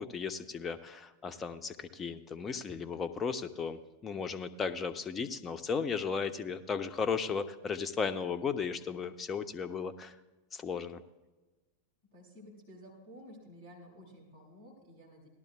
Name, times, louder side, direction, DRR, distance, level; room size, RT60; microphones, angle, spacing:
voice 1, 0.0-10.2 10.5-11.0, left 5 dB, 20° left, 10 dB, 0.6 m, -35 dB
voice 2, 12.1-15.3, equal, 60° right, -3 dB, 3.7 m, -53 dB
18.0 x 12.0 x 2.3 m, 1.2 s
figure-of-eight pair, 90°, 0 cm